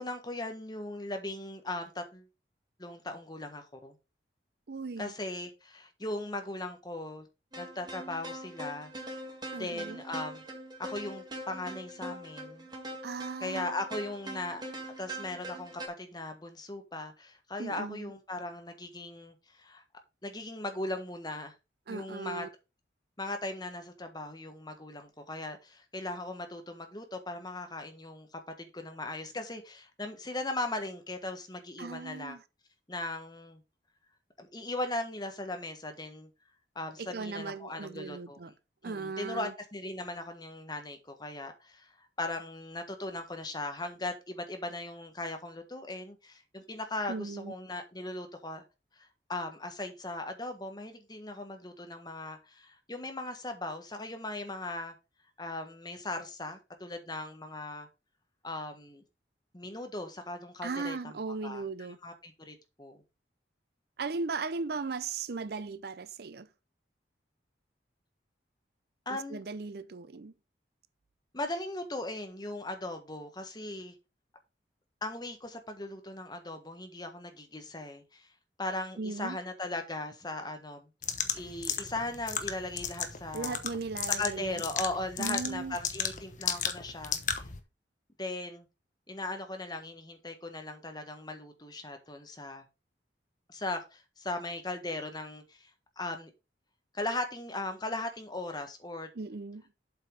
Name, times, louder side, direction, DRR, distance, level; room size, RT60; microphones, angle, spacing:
voice 1, 0.0-2.3 2.8-3.9 5.0-7.3 7.6-8.9 9.6-10.4 10.8-12.7 13.4-14.6 15.0-19.8 20.2-21.5 21.9-22.5 23.2-28.3 28.6-32.4 32.9-33.6 34.4-36.3 36.7-38.5 38.8-48.6 49.0-54.9 55.4-57.9 58.4-59.0 59.5-61.6 62.0-63.0 69.0-69.4 71.3-73.9 75.0-78.3 78.6-80.9 81.3-83.6 84.2-87.5 88.2-88.7 89.1-92.6 93.5-95.7 96.0-96.3 96.9-99.1, left 2 dB, 20° left, 1.5 m, -38 dB
voice 2, 4.7-5.1 9.5-10.0 13.0-13.7 17.6-18.1 21.9-22.5 31.8-32.4 37.0-38.5 38.8-39.5 47.1-47.5 60.6-62.0 64.0-66.5 69.1-70.3 79.0-79.4 83.3-84.6 85.2-85.8 99.1-99.6, right 4 dB, 60° right, 0.5 m, -37 dB
sound 1, 7.5-15.9, right 1 dB, 25° right, 2.1 m, -42 dB
sound 2, 81.0-87.6, left 8 dB, 45° left, 1.1 m, -35 dB
7.9 x 5.6 x 4.9 m
head